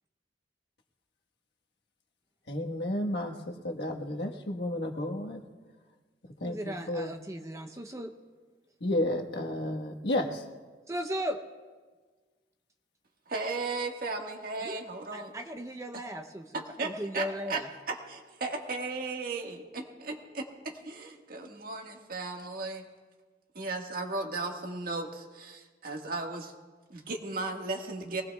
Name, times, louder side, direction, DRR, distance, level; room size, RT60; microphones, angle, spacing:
voice 1, 2.5-5.4 6.4-7.1 8.8-10.4, left 1 dB, 70° left, 1 dB, 1.4 m, -32 dB
voice 2, 6.4-8.1 10.9-11.4 14.6-14.8 15.1-17.7, equal, 15° right, 5 dB, 0.6 m, -37 dB
voice 3, 13.3-15.3 16.5-17.6 17.9-22.8 23.6-26.5 26.9-28.2, right 3 dB, 55° right, 2 dB, 1.6 m, -36 dB
23.5 x 19.0 x 2.3 m, 1.4 s
head